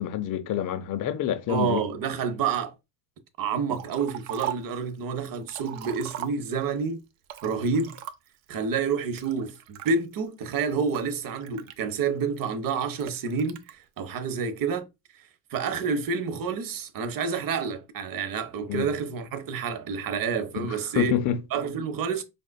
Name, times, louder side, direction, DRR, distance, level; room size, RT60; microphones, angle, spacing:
voice 1, 0.0-1.8 18.7-18.9 20.9-21.4, left 10 dB, 40° left, 0.7 m, -27 dB
voice 2, 1.5-2.7 3.4-7.0 7.4-7.9 8.5-13.6 14.0-14.9 15.5-21.2 21.5-22.2, right 5 dB, 45° right, 0.9 m, -28 dB
Liquid, 3.8-4.8 5.2-6.8 7.2-8.5 9.2-9.9 10.5-12.2 13.0-13.7, right 12 dB, 80° right, 0.8 m, -39 dB
5.1 x 2.4 x 2.2 m
supercardioid pair, 90°, 48 cm